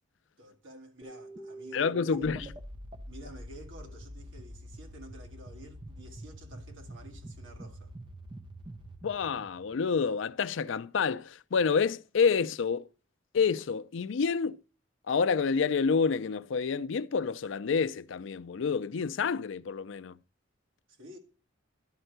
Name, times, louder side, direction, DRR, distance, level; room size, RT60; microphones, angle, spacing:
voice 1, 0.4-2.5 3.1-7.9 20.9-21.2, right 1 dB, 80° right, 1.7 m, -50 dB
sound 1, 1.0-10.4, right 1 dB, 25° right, 0.7 m, -46 dB
voice 2, 1.7-2.5 9.0-12.9 13.3-14.6 15.1-20.2, left 5 dB, 75° left, 0.4 m, -28 dB
11.5 x 4.4 x 7.9 m
head